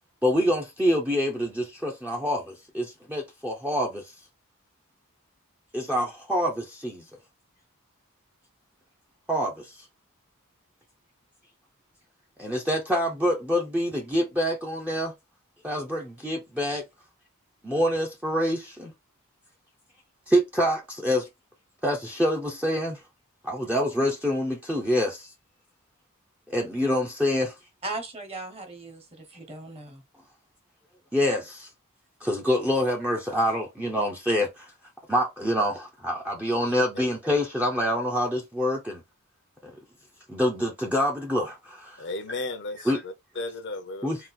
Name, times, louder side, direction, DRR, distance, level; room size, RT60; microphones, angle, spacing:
voice 1, 0.2-4.0 5.7-7.0 9.3-9.8 12.4-15.1 15.6-16.8 17.6-18.9 20.3-21.3 21.8-23.0 23.4-25.3 26.5-27.5 31.1-31.7 32.2-34.7 35.1-39.0 39.6-39.8 40.3-42.0 42.9-43.0 44.0-44.2, equal, 5° right, 0.6 m, -26 dB
voice 2, 27.8-30.0, right 2 dB, 25° right, 1.1 m, -37 dB
voice 3, 42.0-44.1, left 2 dB, 55° left, 0.7 m, -35 dB
3.8 x 2.4 x 4.1 m
head